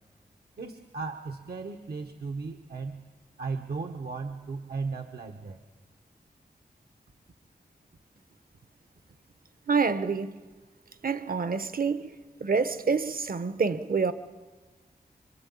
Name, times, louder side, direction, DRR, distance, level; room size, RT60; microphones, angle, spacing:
voice 1, 0.6-3.0 3.4-5.6, right 4 dB, 75° right, 1.4 m, -36 dB
voice 2, 9.7-10.4 11.0-12.1 12.4-14.1, right 5 dB, 60° right, 1.1 m, -27 dB
26.0 x 25.0 x 8.7 m
wide cardioid pair, 90°, 16 cm